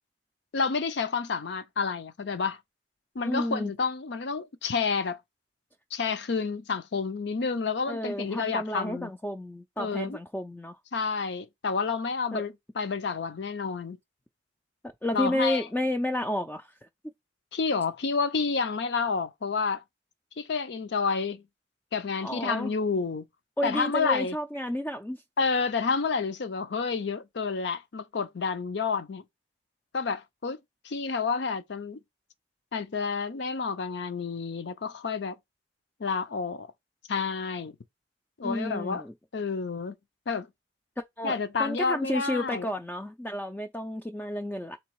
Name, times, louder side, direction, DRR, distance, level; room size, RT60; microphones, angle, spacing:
voice 1, 0.5-2.6 3.1-5.2 5.9-9.1 9.8-10.2 10.9-14.0 15.1-15.7 17.5-19.8 20.4-21.4 21.9-23.3 23.6-24.4 25.4-29.2 29.9-30.6 30.8-32.0 32.7-35.4 36.0-36.7 37.1-37.8 38.4-39.0 39.3-40.0 40.3-40.5 41.2-42.7, left 5 dB, 70° left, 0.6 m, -29 dB
voice 2, 3.2-3.7 7.9-10.8 12.3-12.4 15.0-16.7 22.2-22.7 23.6-25.2 38.4-39.1 41.2-44.8, left 1 dB, 10° left, 0.3 m, -31 dB
3.8 x 3.0 x 4.5 m
head